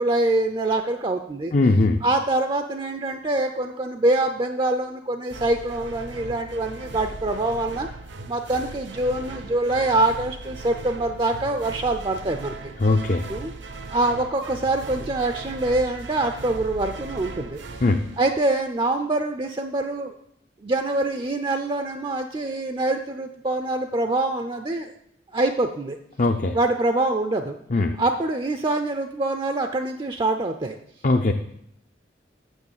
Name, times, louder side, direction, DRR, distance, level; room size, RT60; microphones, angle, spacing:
voice 1, 0.0-1.5 2.0-7.9 8.3-12.7 13.3-13.5 13.9-17.6 18.2-20.1 20.6-24.9 25.3-26.0 26.5-27.6 28.0-30.8, right 2 dB, 25° right, 7 dB, 0.4 m, -24 dB
voice 2, 1.5-2.0 12.8-13.3 17.8-18.1 26.2-26.6 27.7-28.0 31.0-31.3, left 2 dB, 40° left, 5 dB, 0.5 m, -20 dB
sound 1, 5.3-18.9, right 3 dB, 75° right, 0.9 m, -38 dB
7.1 x 6.3 x 7.2 m, 0.73 s
head